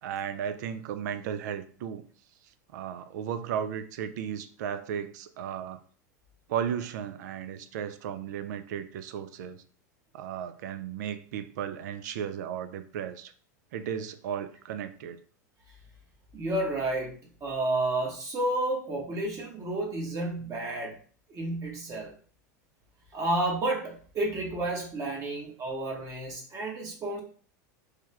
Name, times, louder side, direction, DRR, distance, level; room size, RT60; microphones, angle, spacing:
voice 1, 0.0-2.0 2.7-5.8 6.5-9.6 10.1-13.3 13.7-15.2, right 8 dB, 70° right, 11 dB, 0.4 m, -35 dB
voice 2, 16.3-21.0 21.3-22.1 23.1-27.2, right 2 dB, 35° right, -1 dB, 0.9 m, -31 dB
3.2 x 2.2 x 3.1 m, 0.43 s
hypercardioid pair, 95°, 10 cm